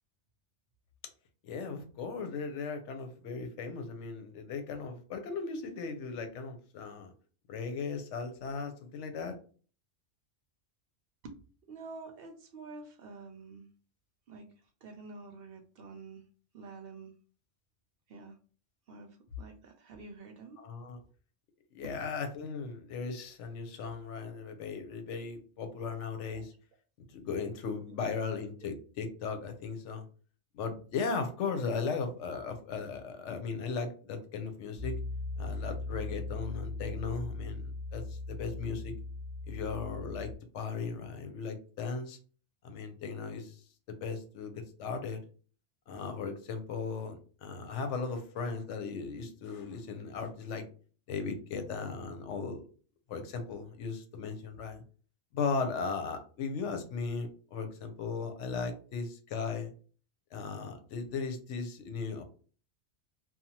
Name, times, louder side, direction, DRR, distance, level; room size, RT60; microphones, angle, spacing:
voice 1, 1.4-7.1 7.5-9.4 20.6-21.0 21.7-26.5 27.1-30.0 30.5-35.0 35.4-39.0 39.5-42.2 42.6-43.6 43.9-45.2 45.9-50.7 51.1-52.7 53.1-54.8 55.3-59.7 60.3-62.2, left 5 dB, 85° left, 0.9 m, -37 dB
voice 2, 11.7-13.7 14.3-16.3 16.5-17.1 18.1-18.4 18.9-20.6 21.8-21.9 26.3-26.4, right 3 dB, 65° right, 0.7 m, -48 dB
Piano, 34.7-40.3, left 2 dB, 20° left, 0.6 m, -39 dB
2.7 x 2.2 x 2.8 m
omnidirectional pair, 1.2 m